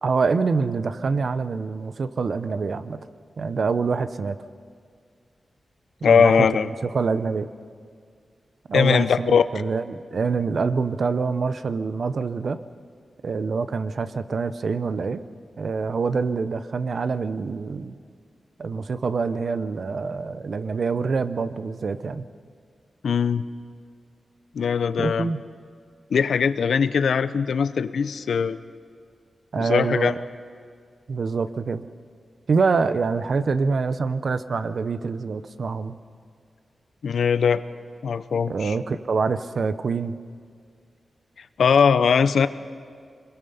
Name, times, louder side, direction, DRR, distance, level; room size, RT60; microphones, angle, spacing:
voice 1, 0.0-3.1 3.4-4.4 6.1-7.5 8.7-12.6 13.2-15.2 15.6-17.9 18.6-22.3 25.0-25.4 29.5-30.2 31.1-31.9 32.5-36.0 38.5-40.2, right 4 dB, 55° right, 12 dB, 0.7 m, -25 dB
voice 2, 6.0-6.7 8.7-9.4 23.0-23.4 24.5-25.3 26.1-28.6 29.6-30.2 37.0-37.6 38.0-38.7 41.6-42.5, left 6 dB, 90° left, 13 dB, 0.7 m, -20 dB
25.5 x 21.5 x 5.6 m, 2.1 s
wide cardioid pair, 165°, 0 cm